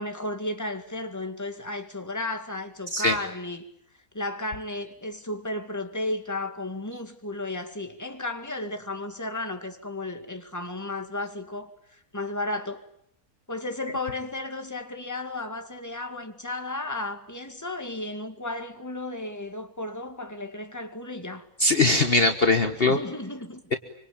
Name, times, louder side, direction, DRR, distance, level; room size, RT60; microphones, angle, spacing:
voice 1, 0.0-3.7 4.1-12.8 13.5-21.5 22.8-23.6, left 2 dB, 10° left, 2.2 m, -34 dB
voice 2, 21.6-23.0, left 2 dB, 40° left, 1.6 m, -21 dB
26.0 x 25.5 x 8.8 m
omnidirectional pair, 1.5 m